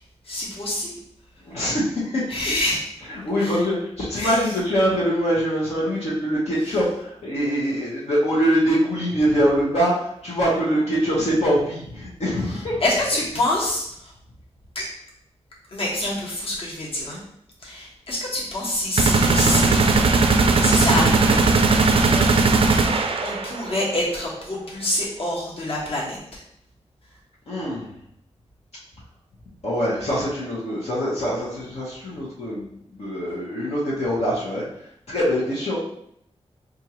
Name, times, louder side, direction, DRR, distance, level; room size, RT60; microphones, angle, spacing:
voice 1, 0.3-0.9 2.3-2.8 3.4-3.6 4.2-4.4 12.8-13.9 14.7-14.8 15.7-17.2 17.6-21.4 22.1-22.3 23.2-26.4, left 1 dB, 55° left, -5 dB, 1.3 m, -26 dB
voice 2, 1.4-2.2 3.1-9.9 10.2-12.8 27.5-27.9 29.6-34.6 35.1-35.8, equal, 75° left, -8 dB, 1.1 m, -23 dB
sound 1, 19.0-23.7, right 3 dB, 55° right, 0.4 m, -18 dB
4.5 x 2.5 x 2.9 m, 0.72 s
wide cardioid pair, 100°, 11 cm